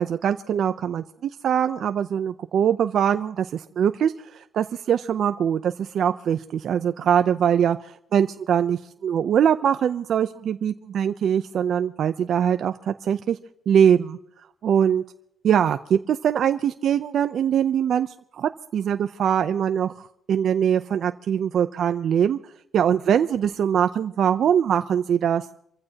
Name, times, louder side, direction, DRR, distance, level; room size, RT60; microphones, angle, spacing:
voice 1, 0.0-13.4 13.7-14.2 14.6-15.0 15.4-18.1 18.3-22.4 22.7-25.5, right 8 dB, 65° right, 9 dB, 0.6 m, -22 dB
26.5 x 15.5 x 2.9 m, 0.72 s
cardioid pair, 90°, 0 cm